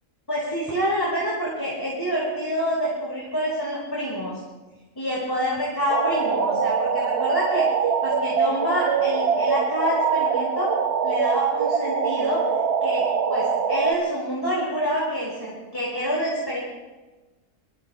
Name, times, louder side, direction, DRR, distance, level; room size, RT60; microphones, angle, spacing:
voice 1, 0.3-4.4 5.0-10.7 11.0-12.4 12.8-16.6, equal, 15° left, -7 dB, 5.8 m, -27 dB
sound 1, 5.9-13.9, right 6 dB, 50° right, 1.1 m, -23 dB
26.0 x 24.0 x 2.2 m, 1.2 s
omnidirectional pair, 1.5 m